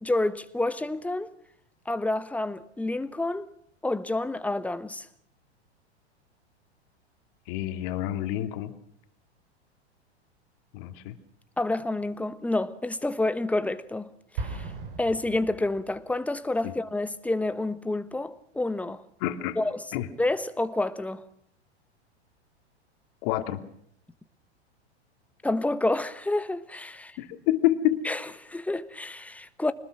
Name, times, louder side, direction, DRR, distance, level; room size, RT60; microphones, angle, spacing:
voice 1, 0.0-1.3 1.9-3.5 3.8-5.1 11.6-14.7 15.0-19.0 19.6-19.8 20.2-21.2 25.4-27.2 28.0-29.7, left 2 dB, 5° left, 1.1 m, -29 dB
voice 2, 7.5-8.7 10.7-11.2 16.6-16.7 19.2-19.6 19.9-20.1 23.2-23.6 27.2-28.0, left 13 dB, 50° left, 2.5 m, -27 dB
Explosion, 14.4-16.2, right 4 dB, 55° right, 5.1 m, -37 dB
25.5 x 20.0 x 6.1 m
figure-of-eight pair, 95°, 34 cm